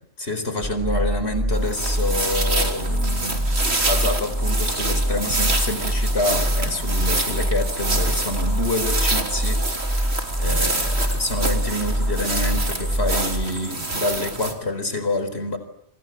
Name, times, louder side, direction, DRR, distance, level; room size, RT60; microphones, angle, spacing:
voice 1, 0.2-3.6 3.9-15.6, left 2 dB, 60° left, 10 dB, 4.6 m, -27 dB
sound 1, 0.6-13.5, equal, 10° right, 1.1 m, -25 dB
sound 2, 1.5-14.5, right 2 dB, 60° right, 3.6 m, -27 dB
sound 3, 2.5-13.9, right 1 dB, 25° left, 8.1 m, -41 dB
29.5 x 26.0 x 7.8 m, 0.75 s
omnidirectional pair, 1.2 m